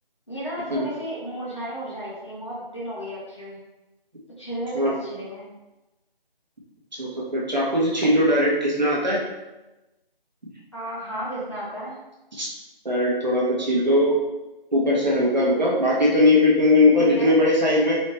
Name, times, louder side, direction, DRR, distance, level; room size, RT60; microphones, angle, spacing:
voice 1, 0.3-3.6 4.4-5.5 10.7-12.0 17.0-17.4, equal, 30° left, -8 dB, 1.0 m, -33 dB
voice 2, 7.0-9.2 12.3-12.5 12.8-14.2 14.7-18.0, left 1 dB, 45° right, -5 dB, 1.1 m, -20 dB
4.2 x 2.8 x 3.2 m, 1.0 s
figure-of-eight pair, 180°, 29 cm